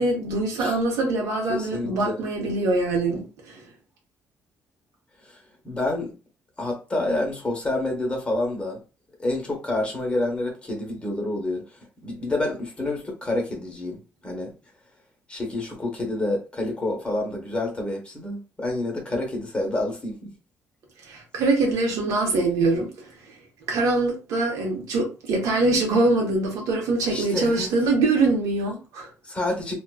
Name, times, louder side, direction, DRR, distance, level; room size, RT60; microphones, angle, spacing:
voice 1, 0.0-3.6 21.1-23.1 23.7-29.1, right 2 dB, 85° right, 0.9 m, -23 dB
voice 2, 1.5-2.2 5.3-5.4 5.6-6.1 6.6-8.8 9.2-11.7 12.0-14.5 15.3-20.3 27.1-27.7 29.2-29.8, left 2 dB, 20° left, 0.8 m, -28 dB
2.4 x 2.2 x 2.2 m
cardioid pair, 125°, 5 cm